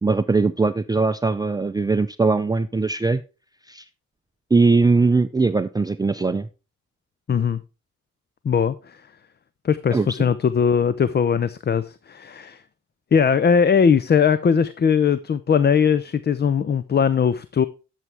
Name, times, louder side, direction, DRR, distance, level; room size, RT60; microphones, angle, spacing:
voice 1, 0.0-3.2 3.7-3.8 4.5-6.5 9.9-10.1, right 3 dB, 15° right, 0.5 m, -20 dB
voice 2, 7.3-7.6 8.4-9.1 9.6-12.6 13.1-17.6, left 6 dB, 35° left, 0.6 m, -20 dB
11.0 x 7.4 x 3.5 m
cardioid pair, 90°, 30 cm